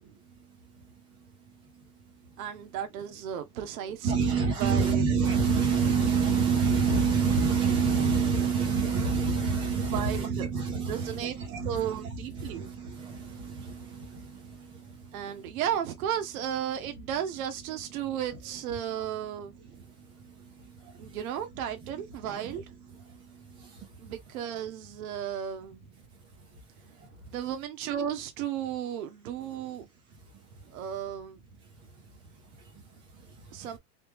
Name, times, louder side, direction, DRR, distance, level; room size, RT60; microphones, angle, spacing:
voice 1, 0.0-2.4 4.0-15.6 19.6-21.2 21.8-22.6 22.8-24.1 26.4-27.2 30.2-30.3 30.6-30.8 31.8-33.7, right 5 dB, 10° right, 0.4 m, -30 dB
voice 2, 2.4-5.0 9.9-10.5 10.9-11.3 11.6-12.7 15.1-19.9 21.0-22.7 24.0-25.8 27.3-29.9 30.7-31.4 33.5-33.8, right 9 dB, 60° right, 0.9 m, -34 dB
3.2 x 2.9 x 3.3 m
supercardioid pair, 145°, 47 cm